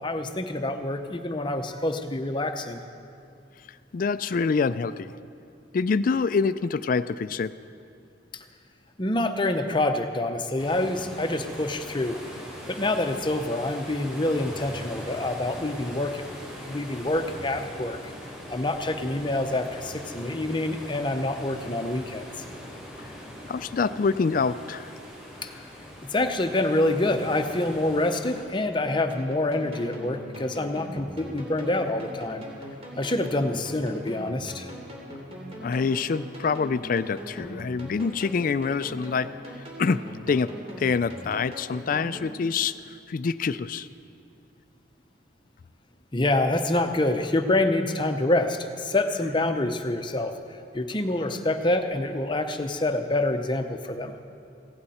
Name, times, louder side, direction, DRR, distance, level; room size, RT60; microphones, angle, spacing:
voice 1, 0.0-2.8 8.3-8.4 9.0-12.2 12.7-16.3 16.6-18.1 18.5-22.3 25.4-25.5 26.0-32.5 33.0-34.7 46.1-50.3 50.7-54.2, left 2 dB, 25° left, 7 dB, 0.8 m, -26 dB
voice 2, 3.9-5.1 5.7-7.5 23.4-24.9 35.6-43.9, left 5 dB, 45° left, 15 dB, 0.3 m, -26 dB
Cantabrico Sea from a Cave in Asturias, 10.6-28.4, equal, 5° right, 3.8 m, -41 dB
sound 1, 29.1-42.3, equal, 35° right, 3.0 m, -41 dB
17.0 x 16.0 x 4.3 m, 2.5 s
head